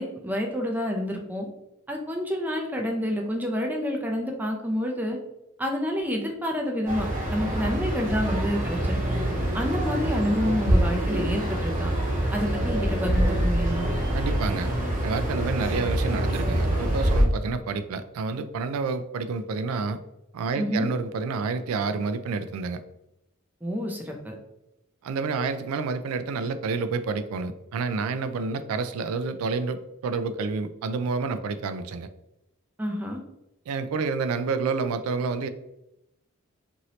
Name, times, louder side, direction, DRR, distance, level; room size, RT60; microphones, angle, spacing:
voice 1, 0.0-1.5 1.9-5.2 5.6-9.0 9.5-11.9 12.3-13.9 20.6-20.9 23.6-24.3 32.8-33.2, equal, 10° right, 1 dB, 0.4 m, -28 dB
sound 1, 6.9-17.2, right 1 dB, 35° right, 0.9 m, -25 dB
voice 2, 14.1-14.7 15.0-20.0 20.3-22.8 25.0-32.1 33.7-35.5, right 4 dB, 75° right, 11 dB, 0.3 m, -29 dB
2.8 x 2.6 x 3.0 m, 0.87 s
head